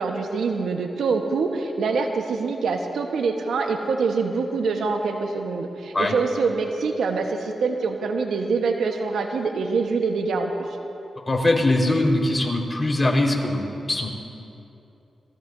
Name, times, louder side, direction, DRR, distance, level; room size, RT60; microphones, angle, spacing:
voice 1, 0.0-10.7, right 4 dB, 80° right, 3 dB, 1.2 m, -25 dB
voice 2, 11.3-14.1, left 1 dB, 25° left, 0 dB, 4.5 m, -21 dB
27.5 x 19.5 x 2.7 m, 2.8 s
supercardioid pair, 45°, 0 cm